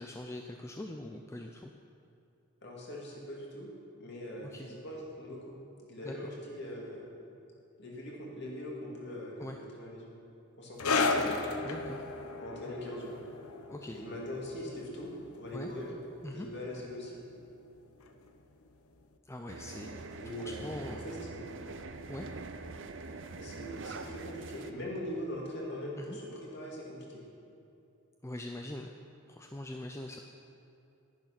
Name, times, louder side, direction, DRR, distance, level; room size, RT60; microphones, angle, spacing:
voice 1, 0.0-1.7 4.4-4.7 6.0-6.4 9.4-9.6 11.6-12.1 13.7-14.0 15.5-15.7 16.2-16.5 19.2-21.0 22.1-22.3 26.0-26.2 28.2-28.9 29.3-30.2, left 1 dB, 10° left, 3 dB, 0.4 m, -42 dB
voice 2, 2.6-3.7 4.0-5.6 5.9-7.1 7.8-10.1 10.6-11.0 12.4-13.2 13.9-15.9 16.3-17.2 20.2-21.4 23.4-27.2, left 1 dB, 50° left, -3 dB, 2.5 m, -41 dB
sound 1, 10.8-17.8 18.0-18.3 19.0-19.1, left 3 dB, 80° left, 0.9 m, -35 dB
sound 2, 19.5-24.7, right 3 dB, 55° right, 0.6 m, -44 dB
11.0 x 10.5 x 5.9 m, 2.8 s
head